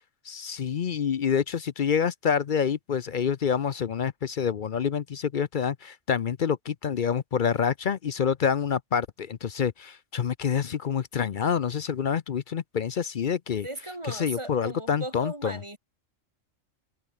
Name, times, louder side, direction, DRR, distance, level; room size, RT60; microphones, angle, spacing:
voice 1, 0.3-13.7 14.1-15.6, left 7 dB, 50° left, 0.7 m, -27 dB
voice 2, 13.6-15.8, right 1 dB, 25° right, 3.4 m, -37 dB
omnidirectional pair, 1.3 m